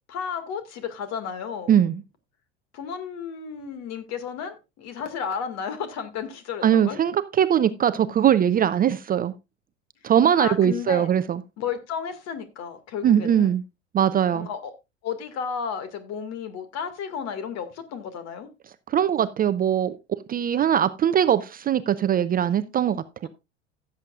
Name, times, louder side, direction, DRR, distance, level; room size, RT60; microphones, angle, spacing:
voice 1, 0.1-1.7 2.7-7.0 10.0-10.1 10.4-11.1 11.6-13.5 14.3-14.7 15.0-18.5 23.2-23.3, left 7 dB, 45° left, 2.1 m, -33 dB
voice 2, 1.7-2.0 6.6-9.3 10.0-11.4 13.0-13.6 13.9-14.5 18.9-20.0 20.3-23.3, right 9 dB, 25° right, 0.5 m, -21 dB
16.0 x 7.8 x 2.4 m
figure-of-eight pair, 80°, 36 cm